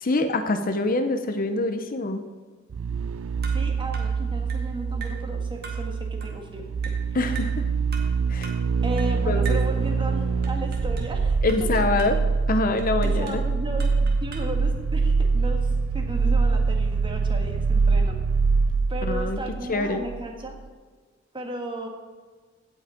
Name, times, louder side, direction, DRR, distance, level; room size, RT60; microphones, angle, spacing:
voice 1, 0.0-2.2 7.1-7.7 8.3-8.6 9.3-9.6 11.4-12.2 12.5-13.4 19.0-19.4 19.7-20.0, left 2 dB, 45° left, 8 dB, 0.8 m, -25 dB
sound 1, 2.7-20.2 20.5-20.6, right 4 dB, 85° right, 0.4 m, -24 dB
sound 2, 3.4-3.7 3.9-4.2 4.5-4.7 5.0-5.2 5.6-5.9 6.2-6.4 6.8-7.1 7.4-7.6 7.9-8.2 8.4-8.7 9.0-9.2 9.4-9.7 10.4-11.2 11.5-12.2 12.8-13.5 13.8-14.6, right 5 dB, 55° right, 1.9 m, -41 dB
voice 2, 3.5-6.7 7.2-7.3 8.8-11.4 13.0-18.2 18.9-20.6 21.3-21.9, equal, 25° right, 2 dB, 1.6 m, -35 dB
16.5 x 5.8 x 5.2 m, 1.5 s
head